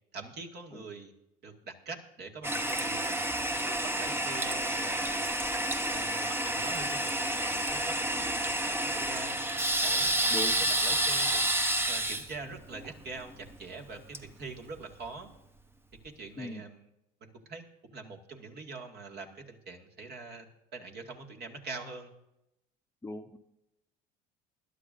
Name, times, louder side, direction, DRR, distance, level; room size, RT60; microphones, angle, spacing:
voice 1, 0.1-1.1 1.4-3.3 3.6-5.3 5.9-9.4 9.8-11.4 11.9-15.3 16.0-16.9 17.2-22.1, right 4 dB, 50° right, 2 dB, 2.2 m, -44 dB
Toilet flush, 2.4-15.1, right 1 dB, 10° right, 0.9 m, -30 dB
voice 2, 23.0-23.4, left 2 dB, 15° left, 5 dB, 0.9 m, -37 dB
21.0 x 11.5 x 2.7 m, 0.87 s
hypercardioid pair, 70°, 21 cm